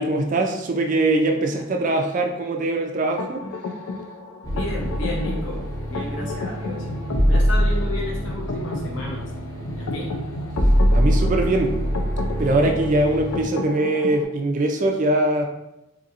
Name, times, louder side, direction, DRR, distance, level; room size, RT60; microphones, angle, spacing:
voice 1, 0.0-3.5 10.9-11.8 12.4-15.5, right 2 dB, 40° right, 3 dB, 0.3 m, -22 dB
sound 1, 3.2-14.2, left 3 dB, 90° left, 0.4 m, -33 dB
voice 2, 4.4-6.9 7.3-9.3 9.7-10.1, left 2 dB, 60° left, -2 dB, 0.8 m, -32 dB
sound 2, 4.4-13.4, equal, 15° left, 0.6 m, -24 dB
4.1 x 2.7 x 2.5 m, 0.89 s
head